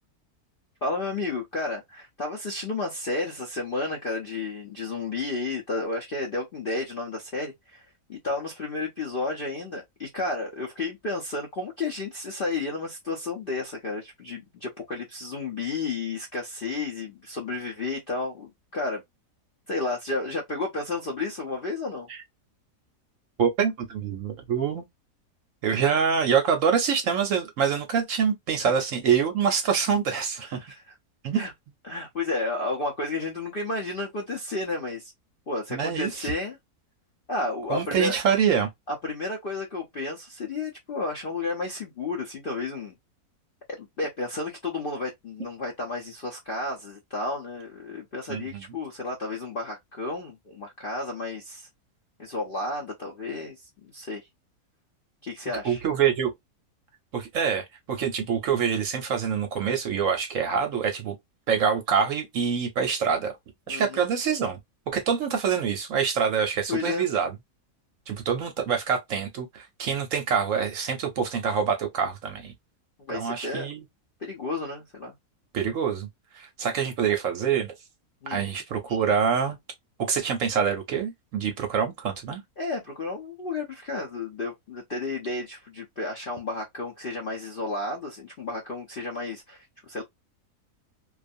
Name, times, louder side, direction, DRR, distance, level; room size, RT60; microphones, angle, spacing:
voice 1, 0.8-19.0 19.7-22.1 28.6-28.7 30.4-31.0 31.3-31.5 31.8-35.1 35.5-36.6 37.3-38.1 38.9-42.9 43.7-51.7 52.2-54.3 55.2-55.8 63.7-64.1 66.7-67.1 73.0-73.7 74.2-75.1 78.2-78.4 82.6-90.0, left 3 dB, 60° left, 0.5 m, -32 dB
voice 2, 23.4-24.8 25.6-30.7 31.2-31.4 35.7-36.3 37.7-38.7 48.3-48.6 55.6-56.3 57.1-61.1 61.5-63.3 63.7-64.6 64.9-67.3 68.1-72.5 73.1-73.8 75.5-76.1 76.3-77.7 78.3-79.6 80.1-82.4, right 7 dB, 65° right, 0.9 m, -25 dB
2.5 x 2.3 x 2.5 m
omnidirectional pair, 1.7 m